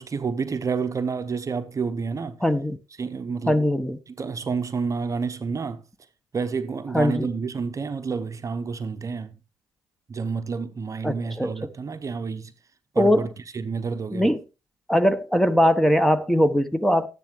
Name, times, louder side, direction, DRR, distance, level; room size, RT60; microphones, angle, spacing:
voice 1, 0.0-2.4 3.0-3.6 4.1-5.8 6.3-9.3 10.1-12.5 12.9-13.3 13.5-14.3, right 5 dB, 35° right, 0.9 m, -29 dB
voice 2, 2.4-2.8 3.5-4.0 6.9-7.3 11.0-11.7 13.0-13.3 14.1-14.4 14.9-17.1, equal, 5° left, 1.1 m, -21 dB
13.5 x 10.5 x 3.2 m
hypercardioid pair, 50°, 9 cm